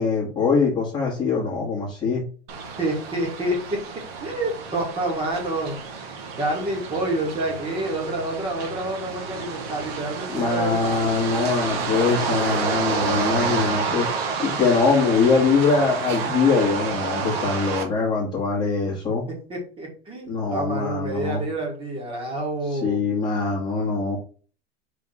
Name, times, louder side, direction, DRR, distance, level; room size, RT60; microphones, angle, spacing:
voice 1, 0.0-2.2 10.3-14.1 14.4-19.2 20.3-21.4 22.8-24.2, left 4 dB, 15° left, -6 dB, 1.8 m, -22 dB
sound 1, 2.5-17.9, right 5 dB, 55° right, 1.5 m, -29 dB
voice 2, 2.8-3.8 4.2-11.1 19.5-23.0, right 1 dB, 15° right, -1 dB, 2.2 m, -28 dB
5.0 x 3.7 x 5.6 m, 0.40 s
supercardioid pair, 170°, 35 cm